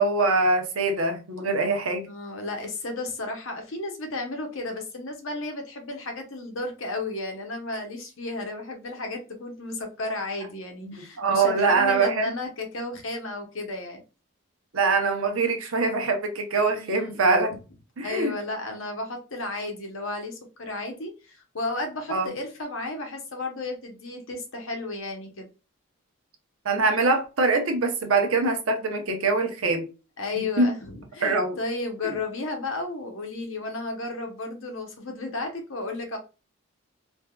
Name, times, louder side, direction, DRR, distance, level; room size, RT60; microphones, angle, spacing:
voice 1, 0.0-2.1 10.8-12.3 14.7-17.6 18.0-18.3 22.1-22.3 26.6-29.9 30.4-30.8 31.2-31.6, right 3 dB, 85° right, 0.7 m, -23 dB
voice 2, 2.0-14.0 16.7-17.2 18.0-25.5 30.2-36.2, left 2 dB, 70° left, 0.8 m, -33 dB
3.4 x 2.6 x 2.2 m
head